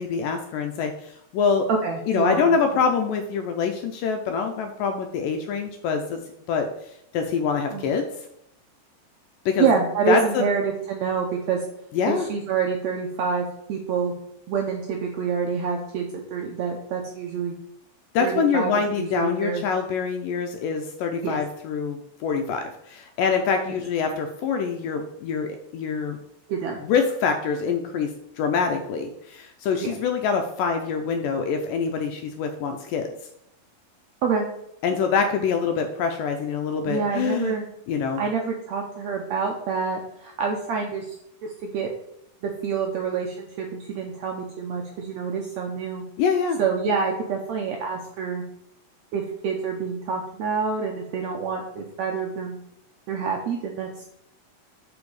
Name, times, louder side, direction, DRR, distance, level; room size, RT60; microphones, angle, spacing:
voice 1, 0.0-1.7 2.1-6.2 6.5-6.7 7.1-8.1 9.5-9.7 10.1-10.5 11.9-12.3 18.1-26.2 26.8-33.1 34.8-37.6 37.9-38.2 46.2-46.6, left 5 dB, 80° left, 5 dB, 2.2 m, -25 dB
voice 2, 1.7-2.6 7.7-7.9 9.6-11.6 12.1-14.1 14.5-17.5 18.2-18.7 19.0-19.6 21.2-21.4 26.5-26.8 29.8-29.9 34.2-34.5 36.9-37.6 38.2-41.2 41.4-41.9 42.4-46.0 46.6-48.4 49.1-52.6 53.1-53.9, right 5 dB, 85° right, 1 dB, 1.5 m, -27 dB
6.8 x 5.2 x 4.8 m, 0.77 s
omnidirectional pair, 4.1 m